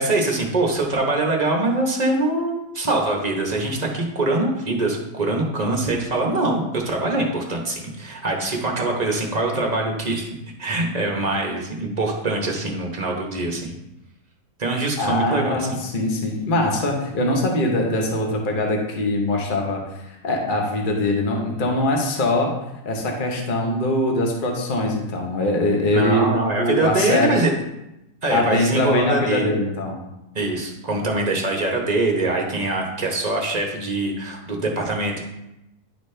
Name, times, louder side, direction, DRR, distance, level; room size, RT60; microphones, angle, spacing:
voice 1, 0.0-10.3 10.6-13.8 14.6-15.8 25.9-27.5 28.2-29.5 30.3-35.2, right 2 dB, 30° right, 0 dB, 0.9 m, -23 dB
voice 2, 15.0-22.5 22.8-26.3 26.6-27.4 28.3-30.0, left 1 dB, 35° left, 1 dB, 1.0 m, -22 dB
10.5 x 4.0 x 3.3 m, 0.90 s
omnidirectional pair, 1.7 m